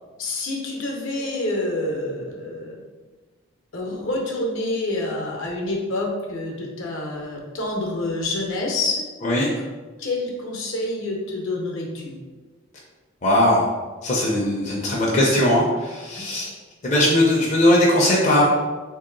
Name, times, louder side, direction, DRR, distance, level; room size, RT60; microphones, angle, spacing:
voice 1, 0.2-2.8 3.7-9.0 10.0-12.1 16.1-16.2, left 2 dB, 65° left, 0 dB, 0.7 m, -27 dB
voice 2, 13.2-13.7 14.0-16.5 16.8-18.4, left 1 dB, 35° left, -4 dB, 0.5 m, -19 dB
3.1 x 2.8 x 3.8 m, 1.3 s
head